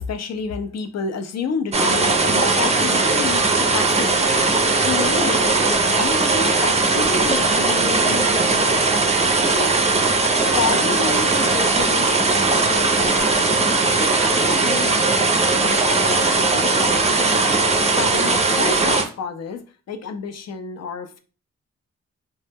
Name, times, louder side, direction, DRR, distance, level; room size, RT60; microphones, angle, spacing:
voice 1, 0.0-4.4 4.8-8.9 9.4-9.8 10.5-13.7 14.0-19.6 19.9-21.2, left 5 dB, 60° left, 0.5 m, -30 dB
sound 1, 1.7-19.0, right 3 dB, 25° right, 0.4 m, -19 dB
2.1 x 2.0 x 3.3 m
cardioid pair, 60°, 29 cm